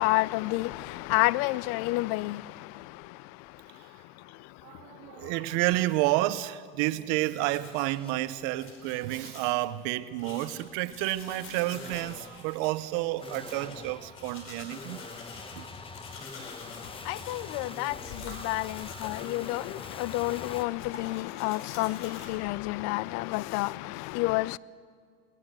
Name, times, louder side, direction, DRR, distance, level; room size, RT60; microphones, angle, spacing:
voice 1, 0.0-5.6 16.4-24.6, left 20 dB, 60° left, 0.5 m, -31 dB
voice 2, 4.6-15.0 15.6-15.7, right 17 dB, 65° right, 0.9 m, -30 dB
sound 1, 6.9-7.1 7.5-8.2 8.7-9.1 10.2-10.8 11.7-20.6, left 4 dB, 15° left, 1.2 m, -45 dB
sound 2, 7.4-22.3, left 3 dB, 45° left, 5.0 m, -48 dB
20.5 x 19.0 x 7.6 m
supercardioid pair, 105°, 30 cm